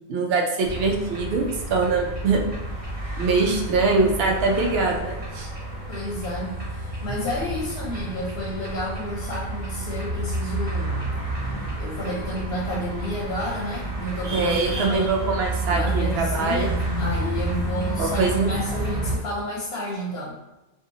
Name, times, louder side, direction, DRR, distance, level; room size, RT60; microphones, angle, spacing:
voice 1, 0.1-2.5 3.2-5.5 14.3-16.7 18.0-18.6, right 3 dB, 75° right, 1 dB, 0.8 m, -23 dB
sound 1, 0.6-19.1, right 2 dB, 35° right, 0.8 m, -30 dB
voice 2, 5.9-11.1 11.8-15.3 15.7-16.7 17.0-20.4, left 1 dB, 85° left, -5 dB, 0.9 m, -31 dB
2.7 x 2.4 x 2.6 m, 0.99 s
omnidirectional pair, 1.0 m